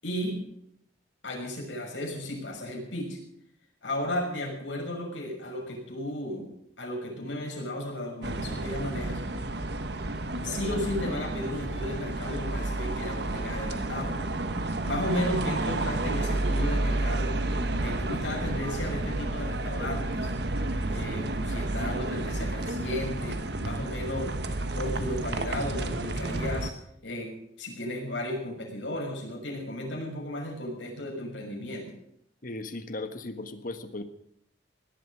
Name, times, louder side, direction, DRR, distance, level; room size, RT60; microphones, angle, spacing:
voice 1, 0.0-0.4 1.2-3.2 3.8-6.5 6.8-9.2 10.4-14.2 14.8-17.4 17.8-20.3 20.9-24.3 24.7-26.7 27.0-27.3 27.6-32.0, left 1 dB, 85° left, 0 dB, 6.2 m, -34 dB
sound 1, 8.2-26.7, right 2 dB, 65° right, 1.3 m, -31 dB
voice 2, 32.4-34.0, left 2 dB, 50° left, 9 dB, 1.5 m, -37 dB
18.0 x 12.0 x 6.3 m, 0.73 s
head